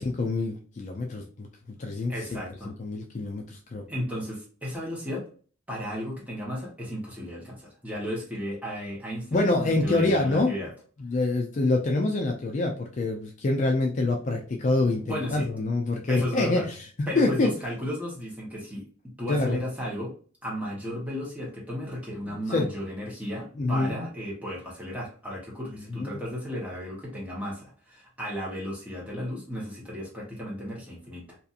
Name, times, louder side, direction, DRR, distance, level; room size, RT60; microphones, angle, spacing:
voice 1, 0.0-2.4 2.6-3.8 9.3-10.6 11.0-16.7 17.2-17.5 19.3-19.6 22.2-22.7 23.6-24.0 25.9-26.2, left 2 dB, 35° left, 2 dB, 0.4 m, -26 dB
voice 2, 2.1-2.7 3.9-5.3 5.7-10.7 14.7-15.5 16.1-16.7 17.1-18.8 19.2-20.1 20.4-31.4, equal, 5° right, -4 dB, 0.9 m, -34 dB
2.8 x 2.4 x 2.3 m, 0.42 s
head